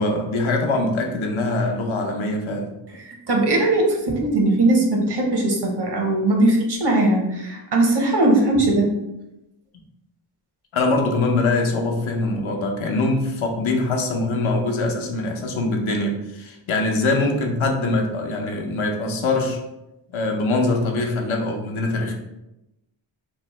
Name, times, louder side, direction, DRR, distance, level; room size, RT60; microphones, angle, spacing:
voice 1, 0.0-2.7 10.7-19.6 20.1-22.1, left 2 dB, 75° left, 2 dB, 0.6 m, -23 dB
voice 2, 3.3-9.0, right 2 dB, 55° right, 1 dB, 0.8 m, -19 dB
3.0 x 2.0 x 3.0 m, 0.93 s
cardioid pair, 55°, 48 cm